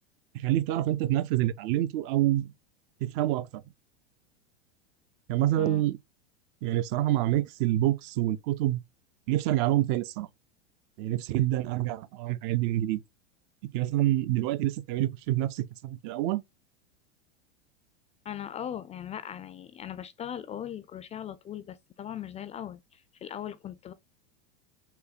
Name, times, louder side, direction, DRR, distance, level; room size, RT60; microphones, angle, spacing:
voice 1, 0.4-2.5 3.0-3.6 5.3-6.0 6.6-8.8 9.3-10.3 11.0-13.0 13.7-16.4, right 14 dB, 45° right, 0.5 m, -27 dB
voice 2, 18.2-23.9, left 10 dB, 20° left, 0.4 m, -39 dB
5.7 x 2.1 x 4.0 m
hypercardioid pair, 115°, 33 cm